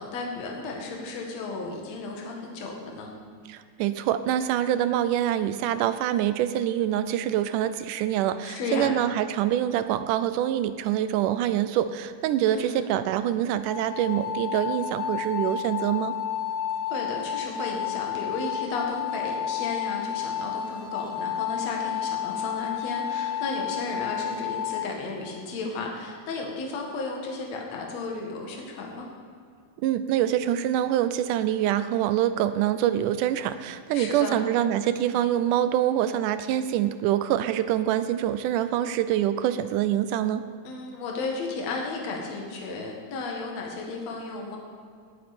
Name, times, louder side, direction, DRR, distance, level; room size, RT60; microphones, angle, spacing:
voice 1, 0.0-3.1 8.4-8.9 12.5-12.9 16.8-29.1 33.9-34.4 40.6-44.6, left 3 dB, 60° left, 0 dB, 2.8 m, -34 dB
voice 2, 3.5-16.1 29.8-40.5, right 11 dB, 85° right, 12 dB, 2.1 m, -25 dB
sound 1, 13.7-24.9, left 9 dB, 80° left, 2.9 m, -31 dB
18.5 x 9.5 x 4.3 m, 2.2 s
omnidirectional pair, 3.7 m